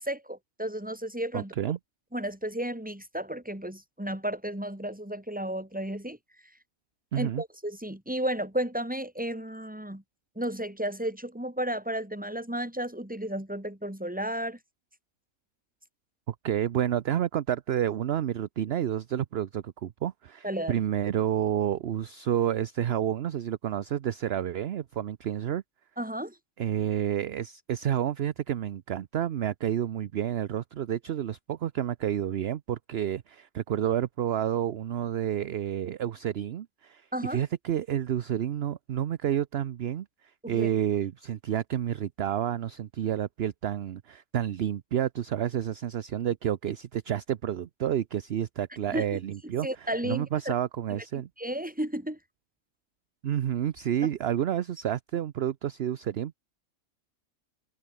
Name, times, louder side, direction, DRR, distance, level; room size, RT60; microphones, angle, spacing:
voice 1, 0.0-1.5 2.1-6.2 7.1-10.0 10.4-14.6 20.4-20.8 26.0-26.4 37.1-37.4 40.4-40.7 48.9-49.0 49.6-50.5 51.4-52.2, right 1 dB, 5° right, 2.9 m, -33 dB
voice 2, 1.3-1.8 7.1-7.4 16.3-25.6 26.6-40.1 40.5-51.3 53.2-56.3, right 10 dB, 55° right, 0.8 m, -30 dB
omnidirectional pair, 1.4 m